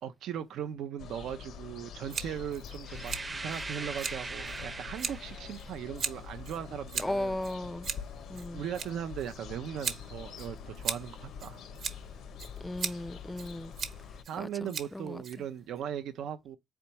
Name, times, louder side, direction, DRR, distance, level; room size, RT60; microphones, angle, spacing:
voice 1, 0.0-7.3 8.5-11.6 14.3-16.6, right 9 dB, 80° right, 0.5 m, -38 dB
sound 1, 1.0-14.2, left 7 dB, 75° left, 0.6 m, -45 dB
Scissors, 2.1-15.8, right 6 dB, 60° right, 1.0 m, -40 dB
sound 2, 2.8-5.6, right 3 dB, 25° right, 0.6 m, -40 dB
voice 2, 7.0-7.9 8.3-8.6 12.6-13.7 14.4-15.2, left 1 dB, 10° left, 0.3 m, -36 dB
4.3 x 3.4 x 2.9 m
cardioid pair, 90°, 0 cm